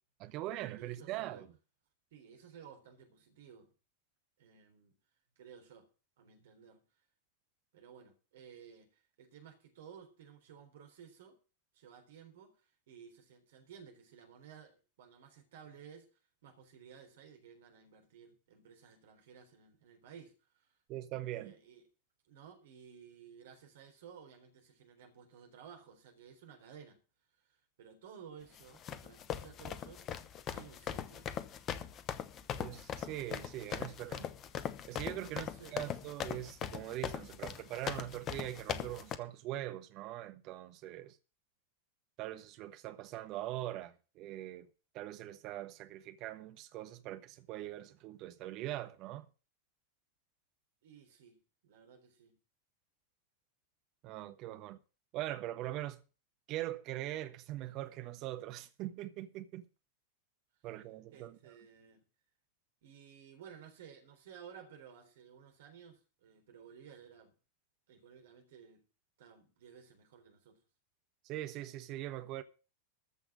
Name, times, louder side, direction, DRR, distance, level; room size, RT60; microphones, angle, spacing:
voice 1, 0.2-1.5 20.9-21.5 32.6-34.3 34.9-41.2 42.2-44.7 44.9-49.3 54.0-54.8 55.1-56.0 56.5-59.6 60.6-61.5 71.2-72.4, right 14 dB, 40° right, 1.2 m, -42 dB
voice 2, 0.7-1.5 2.1-3.7 4.4-5.0 5.4-5.9 6.2-6.8 7.7-11.4 11.7-12.6 12.9-16.1 16.4-20.8 21.3-21.8 22.3-27.0 27.4-30.0 30.5-31.3 35.2-35.8 50.8-52.4 61.1-62.0 62.8-67.3 67.9-68.8 69.2-70.6, right 7 dB, 55° right, 3.7 m, -55 dB
sound 1, 28.6-39.2, left 9 dB, 30° left, 1.0 m, -40 dB
14.0 x 6.0 x 7.6 m
figure-of-eight pair, 90°, 0 cm